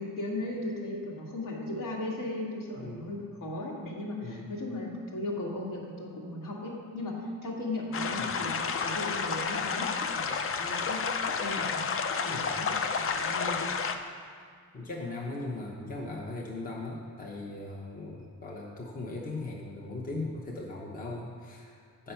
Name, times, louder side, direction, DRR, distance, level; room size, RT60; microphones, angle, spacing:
voice 1, 0.0-11.0 11.4-11.8 12.2-12.7 12.9-13.7, left 1 dB, 70° left, -3 dB, 1.9 m, -37 dB
voice 2, 2.8-3.1 4.2-4.5 8.1-8.3 12.3-12.5 14.7-22.1, left 2 dB, 25° left, -2 dB, 0.9 m, -39 dB
sound 1, 7.9-14.0, left 5 dB, 40° left, 0.5 m, -31 dB
8.5 x 5.5 x 5.7 m, 2.1 s
wide cardioid pair, 165°, 34 cm